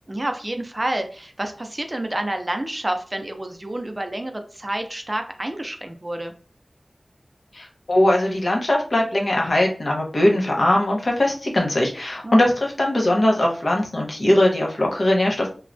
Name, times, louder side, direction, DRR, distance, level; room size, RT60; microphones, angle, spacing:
voice 1, 0.1-6.3 12.2-12.5, right 1 dB, 30° right, 5 dB, 0.4 m, -29 dB
voice 2, 7.5-15.5, left 1 dB, 65° left, 0 dB, 0.7 m, -20 dB
3.1 x 2.2 x 2.5 m, 0.39 s
wide cardioid pair, 60°, 0 cm